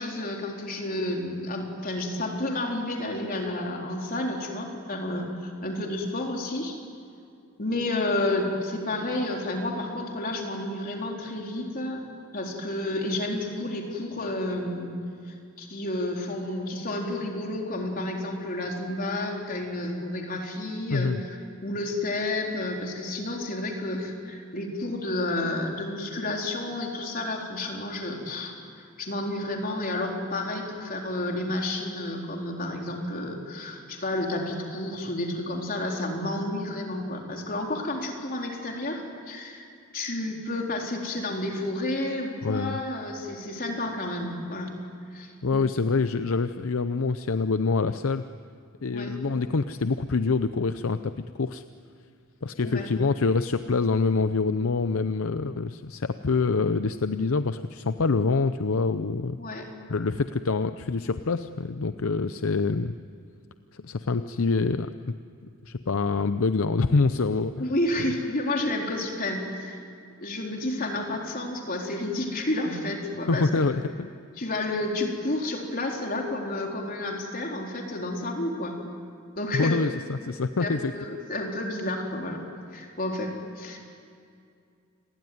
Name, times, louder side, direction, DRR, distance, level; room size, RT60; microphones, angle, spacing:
voice 1, 0.0-6.7 7.6-12.0 12.3-15.0 15.3-21.4 21.6-28.5 29.0-44.7 45.1-45.7 48.9-49.1 52.6-52.9 59.4-59.6 67.6-69.8 70.2-73.7 74.4-78.8 79.4-79.8 80.6-82.4 82.7-83.8, left 1 dB, 40° left, 1 dB, 4.1 m, -31 dB
voice 2, 20.9-21.2 42.4-42.8 45.4-48.2 48.8-51.6 52.4-59.4 59.9-63.0 63.8-65.1 65.7-67.7 73.3-74.1 79.5-80.9, left 4 dB, 65° left, 11 dB, 0.7 m, -26 dB
28.5 x 21.5 x 9.5 m, 2.4 s
head